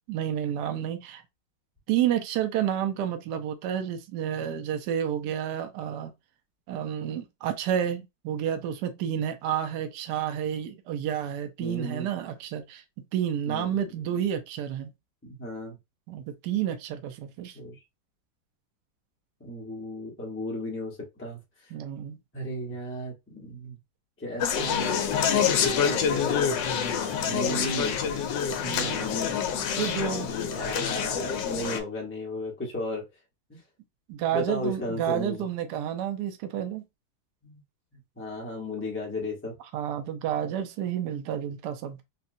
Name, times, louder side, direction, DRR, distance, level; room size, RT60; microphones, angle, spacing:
voice 1, 0.1-1.2 1.9-6.1 6.7-14.9 16.1-17.5 21.7-22.2 27.3-27.8 28.7-29.1 29.7-30.3 34.1-36.8 39.7-42.0, right 10 dB, 70° right, 1.1 m, -30 dB
voice 2, 11.6-12.1 13.5-14.1 15.2-15.8 17.5-17.8 19.4-21.7 22.3-23.8 24.2-25.0 25.3-26.4 27.2-28.1 28.6-29.6 30.0-33.1 33.5-33.6 34.3-35.4 37.4-37.6 38.2-39.5, left 1 dB, 10° left, 0.7 m, -35 dB
Conversation, 24.4-31.8, left 7 dB, 70° left, 1.2 m, -27 dB
4.1 x 2.2 x 2.6 m
omnidirectional pair, 2.2 m